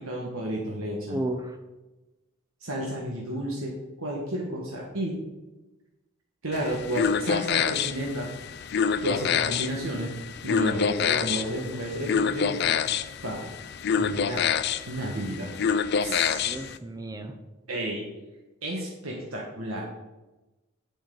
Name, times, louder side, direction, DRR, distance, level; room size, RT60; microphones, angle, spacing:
voice 1, 0.0-1.2 2.6-3.7 4.0-5.1 6.4-8.3 9.0-10.1 10.4-12.8 13.2-13.4 14.0-14.5 14.9-15.5 16.0-16.6 17.7-18.0 18.6-19.8, right 1 dB, 85° right, -2 dB, 1.5 m, -32 dB
voice 2, 1.1-1.5 16.3-17.3, right 1 dB, 15° right, 7 dB, 0.6 m, -33 dB
sound 1, 6.5-16.8, left 7 dB, 50° left, 0.4 m, -27 dB
8.4 x 8.2 x 3.9 m, 1.1 s
head